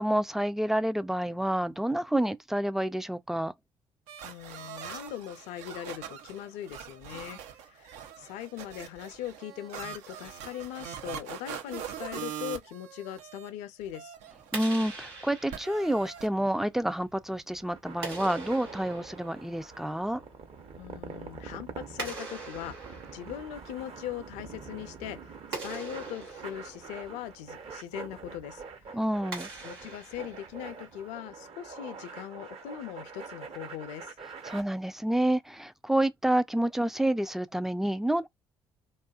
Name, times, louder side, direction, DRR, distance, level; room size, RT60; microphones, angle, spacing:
voice 1, 0.0-3.5 14.5-20.2 28.9-29.5 34.5-38.3, right 1 dB, 5° right, 0.3 m, -28 dB
sound 1, 4.1-13.5 13.8-14.7 15.5-16.3, right 9 dB, 70° right, 0.5 m, -42 dB
voice 2, 4.2-14.2 20.8-25.3 25.6-28.6 28.9-29.0 29.6-34.2, left 11 dB, 65° left, 0.4 m, -40 dB
Clapping, 14.4-31.1, right 3 dB, 85° right, 0.9 m, -44 dB
sound 2, 17.6-34.6, right 5 dB, 50° right, 0.9 m, -45 dB
2.6 x 2.4 x 2.2 m
figure-of-eight pair, 45°, 13 cm